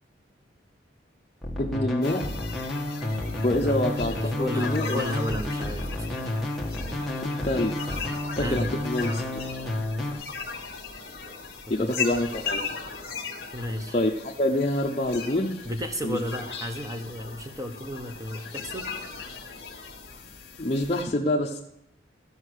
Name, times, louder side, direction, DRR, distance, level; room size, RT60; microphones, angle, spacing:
sound 1, 1.4-10.1, left 1 dB, ahead, 1.4 m, -31 dB
voice 1, 1.6-2.2 3.4-5.0 7.4-7.8 8.4-9.6 11.2-11.3 11.7-12.6 13.9-15.7 16.0-16.2 16.5-16.7 20.6-21.6, left 1 dB, 35° left, -1 dB, 0.7 m, -26 dB
sound 2, 2.0-21.0, left 5 dB, 55° left, 1.6 m, -38 dB
voice 2, 4.2-6.3 8.4-8.7 10.1-10.3 11.8-11.9 13.5-13.9 15.6-18.8, equal, 15° right, 5 dB, 1.1 m, -33 dB
14.5 x 5.6 x 6.4 m, 0.81 s
head